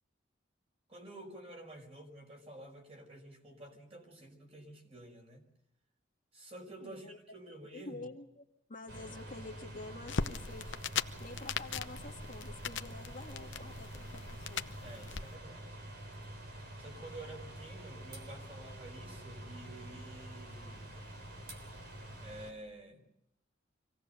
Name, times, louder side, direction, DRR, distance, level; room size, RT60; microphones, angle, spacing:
voice 1, 0.9-5.5 6.3-8.1 14.8-15.7 16.8-21.0 22.2-23.0, right 1 dB, 35° right, 2 dB, 5.2 m, -50 dB
voice 2, 6.8-7.2 7.7-8.4 8.7-10.9 11.2-14.2 14.5-14.6, left 2 dB, 45° left, 3 dB, 1.6 m, -48 dB
sound 1, 8.9-22.5, right 1 dB, 60° right, 3.6 m, -47 dB
sound 2, 10.1-15.2, left 6 dB, 85° left, 0.9 m, -39 dB
25.5 x 17.5 x 6.8 m, 0.81 s
head